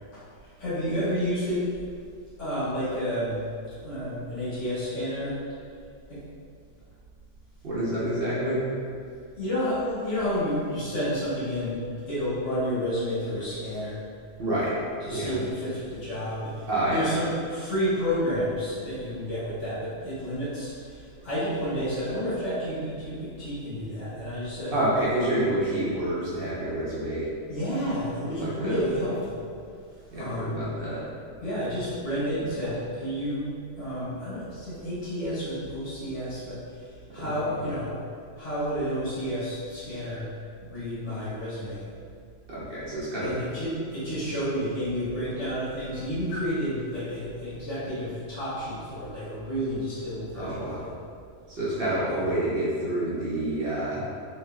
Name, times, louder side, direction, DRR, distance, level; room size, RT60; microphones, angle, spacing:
voice 1, 0.6-1.7 2.4-3.4 3.8-5.4 6.1-6.2 9.3-14.0 15.0-20.7 21.2-24.7 27.5-29.4 30.1-30.6 31.4-36.6 37.1-37.9 38.4-40.3 40.6-41.8 43.2-50.9 52.1-52.3, equal, 70° left, -12 dB, 1.7 m, -30 dB
voice 2, 7.6-8.6 14.4-14.7 15.1-15.4 16.7-17.1 24.7-27.3 28.3-28.8 30.1-31.0 37.2-37.3 42.5-43.4 50.3-50.9 51.5-54.0, right 1 dB, 50° right, -9 dB, 0.9 m, -28 dB
3.2 x 3.0 x 2.2 m, 2.3 s
omnidirectional pair, 1.3 m